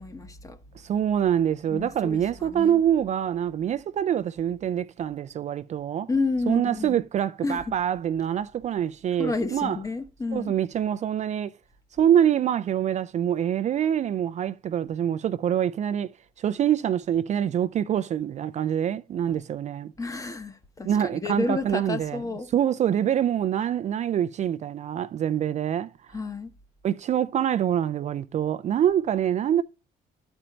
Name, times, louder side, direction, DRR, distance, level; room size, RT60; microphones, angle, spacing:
voice 1, 0.0-0.6 1.7-2.8 6.1-7.0 7.4-7.8 9.2-10.5 19.3-19.4 20.0-22.5 26.1-26.5, left 3 dB, 20° left, 1.0 m, -31 dB
voice 2, 0.7-6.1 6.5-9.8 10.3-11.5 12.0-16.1 16.4-19.9 20.9-22.2 22.5-25.9 26.8-29.6, right 9 dB, 45° right, 0.4 m, -25 dB
11.5 x 4.4 x 5.1 m
cardioid pair, 110°, 17 cm